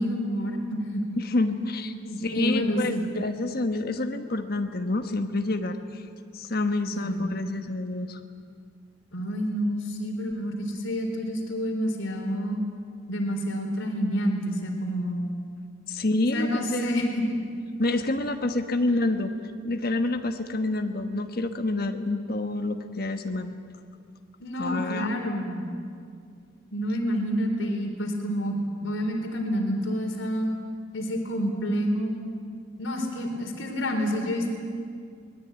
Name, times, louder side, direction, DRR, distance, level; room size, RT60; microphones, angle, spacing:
voice 1, 0.0-1.0 2.0-3.0 6.9-7.4 9.1-12.6 13.1-15.3 16.3-17.4 18.9-19.0 24.4-25.7 26.7-30.5 30.9-32.1 32.8-34.5, equal, 75° left, 3 dB, 4.0 m, -28 dB
voice 2, 1.2-6.0 6.3-8.2 15.9-17.1 17.8-19.3 19.6-23.6 24.6-25.1, left 2 dB, 50° left, 6 dB, 1.3 m, -28 dB
23.5 x 20.0 x 9.0 m, 2.3 s
head